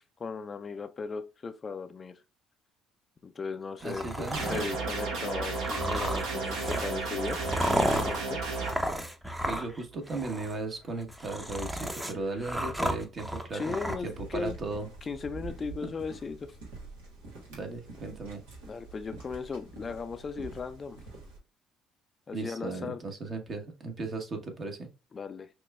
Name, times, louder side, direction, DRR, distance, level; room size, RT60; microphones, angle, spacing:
voice 1, 0.0-2.1 3.2-7.4 7.7-8.4 13.5-14.6 15.0-16.4 18.7-21.0 22.3-23.0 25.1-25.5, left 5 dB, 35° left, 0.4 m, -37 dB
sound 1, 3.8-4.7 5.6-9.8 10.1-10.5 11.0-14.0, equal, 5° right, 0.6 m, -33 dB
voice 2, 3.8-4.7 9.4-14.9 15.8-15.9 17.5-18.4 22.3-24.9, right 3 dB, 45° right, 1.0 m, -36 dB
sound 2, 4.3-8.7, right 3 dB, 70° right, 1.4 m, -33 dB
sound 3, 13.9-21.4, right 3 dB, 90° right, 1.3 m, -46 dB
5.9 x 2.2 x 2.2 m
supercardioid pair, 65°, 0 cm